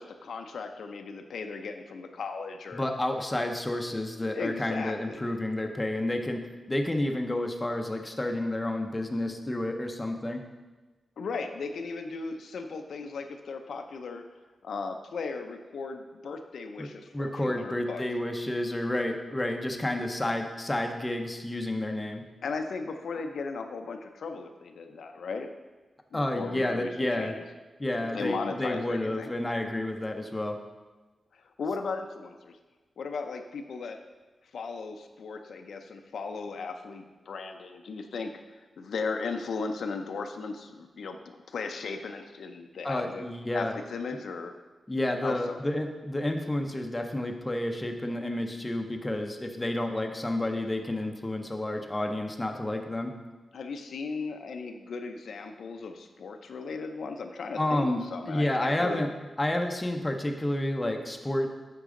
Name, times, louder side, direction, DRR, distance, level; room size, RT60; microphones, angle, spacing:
voice 1, 0.0-2.8 4.3-5.2 11.2-14.2 14.6-18.0 22.4-25.5 26.1-27.5 28.1-29.3 31.3-32.6 33.0-34.0 34.5-43.2 43.5-44.5 45.2-45.6 53.5-59.0, left 4 dB, 80° left, 5 dB, 0.6 m, -36 dB
voice 2, 2.7-6.4 6.7-10.4 16.8-16.9 17.1-22.2 26.1-27.3 27.8-30.6 42.8-43.7 44.9-53.1 57.6-58.0 58.3-59.1 59.4-61.5, left 1 dB, 15° left, 3 dB, 0.6 m, -30 dB
8.2 x 6.0 x 3.7 m, 1.2 s
wide cardioid pair, 150°, 0 cm